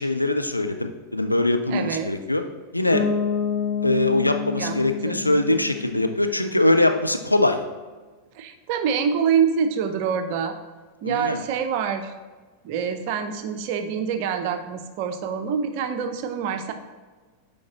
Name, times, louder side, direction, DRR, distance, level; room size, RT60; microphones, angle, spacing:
voice 1, 0.0-2.4 2.7-3.0 3.8-7.6 11.0-11.4, left 2 dB, 85° left, 6 dB, 0.5 m, -22 dB
voice 2, 1.7-2.1 4.6-4.8 5.0-5.3 8.4-10.6 11.0-12.1 12.6-16.7, right 7 dB, 45° right, 8 dB, 0.7 m, -26 dB
Bass guitar, 2.9-6.8, left 6 dB, 25° left, 1.6 m, -28 dB
8.5 x 5.2 x 3.0 m, 1.4 s
figure-of-eight pair, 90°, 0 cm